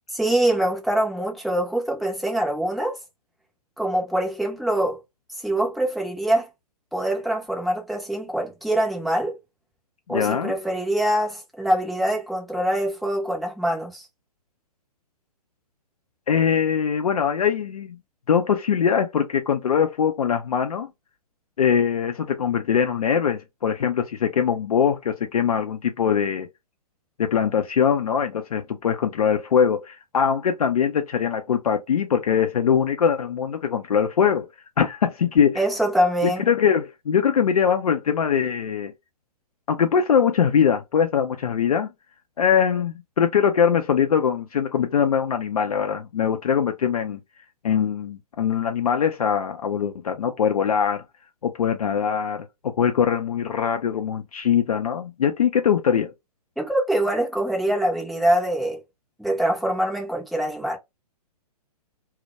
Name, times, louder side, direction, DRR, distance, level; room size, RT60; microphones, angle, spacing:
voice 1, 0.1-3.0 3.8-5.0 5.4-6.5 6.9-9.4 10.1-14.1 35.6-36.5 56.6-58.8 59.2-60.8, right 1 dB, ahead, 0.5 m, -24 dB
voice 2, 10.1-10.5 16.3-18.0 18.3-20.9 21.6-26.5 27.2-34.5 34.8-35.6 36.2-38.9 39.7-41.9 42.4-47.2 47.6-51.0 51.4-56.1, left 7 dB, 65° left, 0.4 m, -22 dB
2.1 x 2.1 x 2.8 m
figure-of-eight pair, 120°, 20 cm